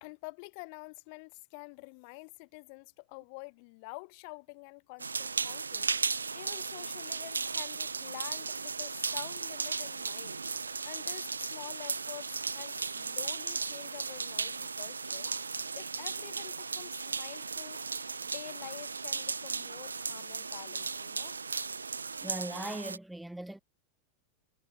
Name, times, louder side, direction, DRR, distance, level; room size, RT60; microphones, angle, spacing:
voice 1, 0.0-10.4 10.8-15.3 15.7-17.8 18.2-21.3, left 34 dB, 45° left, 0.5 m, -48 dB
sound 1, 5.0-23.0, right 4 dB, 75° right, 0.3 m, -36 dB
voice 2, 22.2-23.6, right 1 dB, 5° right, 0.6 m, -39 dB
figure-of-eight pair, 90°, 0 cm